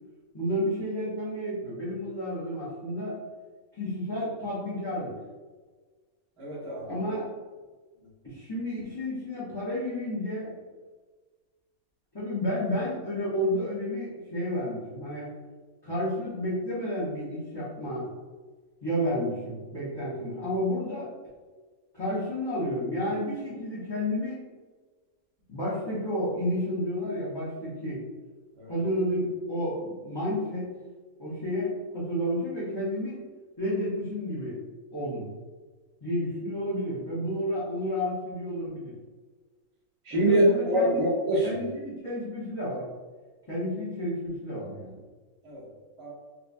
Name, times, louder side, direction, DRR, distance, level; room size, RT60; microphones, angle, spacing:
voice 1, 0.3-3.2 3.7-5.1 6.8-7.3 8.2-10.5 12.1-15.3 15.8-18.1 18.8-21.1 21.9-24.4 25.5-28.0 28.7-30.7 31.2-33.2 33.6-34.6 34.9-35.3 36.0-38.9 40.1-41.0 41.4-42.8 43.4-45.0, equal, 20° left, -11 dB, 0.8 m, -31 dB
voice 2, 6.4-7.2 28.6-28.7 40.1-41.5 45.4-45.6 46.0-46.1, right 1 dB, 85° right, -10 dB, 1.9 m, -25 dB
4.6 x 2.2 x 2.6 m, 1.4 s
omnidirectional pair, 1.5 m